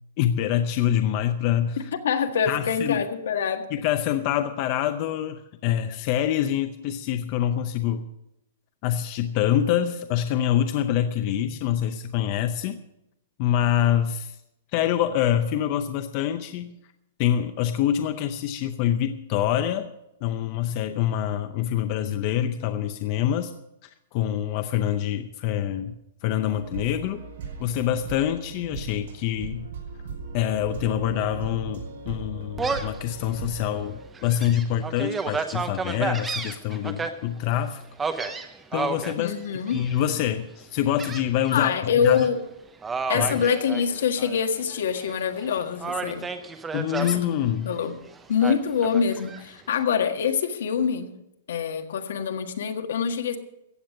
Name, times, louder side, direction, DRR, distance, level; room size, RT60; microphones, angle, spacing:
voice 1, 0.2-1.8 2.5-3.0 3.7-8.0 8.8-12.8 13.4-14.3 14.7-16.7 17.2-19.9 20.2-23.5 24.1-25.9 26.2-27.2 27.6-29.6 30.3-37.8 38.7-39.3 39.7-41.7 42.0-42.3 43.1-43.4 46.7-47.7, left 11 dB, 30° left, 9 dB, 0.6 m, -25 dB
voice 2, 2.0-3.7 39.2-39.8 41.5-42.4 43.1-46.3 47.0-47.2 47.6-48.0 48.3-51.1 51.5-53.4, left 7 dB, 70° left, 6 dB, 1.7 m, -25 dB
sound 1, 26.5-34.0, right 4 dB, 60° right, 5.3 m, -38 dB
Gull seagull, 32.6-33.0 33.5-33.6 34.1-37.1 38.0-39.1 39.7-40.1 41.0-41.7 42.0-42.3 42.8-44.4 44.7-45.4 45.8-47.2 48.4-49.4, right 4 dB, 10° right, 0.8 m, -31 dB
15.0 x 8.9 x 6.5 m, 0.83 s
supercardioid pair, 180°, 0 cm